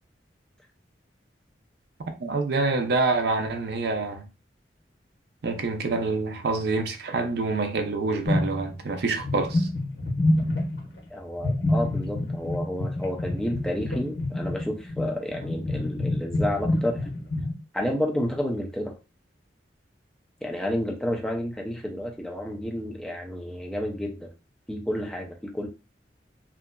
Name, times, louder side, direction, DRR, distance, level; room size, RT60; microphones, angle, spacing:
voice 1, 2.2-4.3 5.4-9.7, right 3 dB, 65° right, 0.5 m, -26 dB
sound 1, 8.3-8.9 9.2-10.9 11.4-17.5, left 1 dB, 75° left, 1.0 m, -27 dB
voice 2, 11.1-17.1 17.7-19.0 20.4-24.3 24.7-25.7, left 1 dB, 5° left, 0.4 m, -30 dB
2.8 x 2.4 x 2.2 m
head